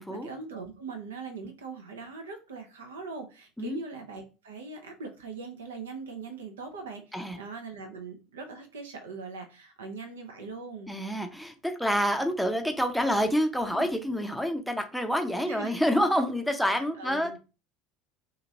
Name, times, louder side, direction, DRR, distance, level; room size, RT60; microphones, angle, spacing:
voice 1, 0.0-10.9 13.7-13.9 15.5-15.8 16.6-17.4, right 4 dB, 75° right, 6 dB, 0.5 m, -41 dB
voice 2, 10.9-17.4, equal, ahead, 5 dB, 0.5 m, -27 dB
2.8 x 2.5 x 2.7 m, 0.32 s
figure-of-eight pair, 70°, 0 cm